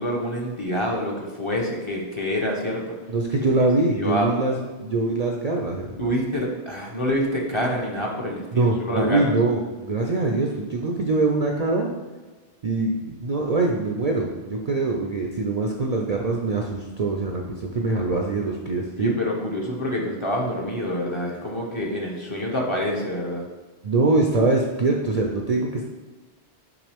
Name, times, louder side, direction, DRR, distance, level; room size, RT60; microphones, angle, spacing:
voice 1, 0.0-3.0 3.6-3.7 4.0-4.3 6.0-9.3 19.0-23.5, equal, 30° left, -2 dB, 0.8 m, -27 dB
voice 2, 3.1-6.1 8.5-11.9 12.6-19.2 23.8-25.8, right 3 dB, 50° right, 1 dB, 0.5 m, -23 dB
6.1 x 4.9 x 3.5 m, 1.3 s
omnidirectional pair, 1.1 m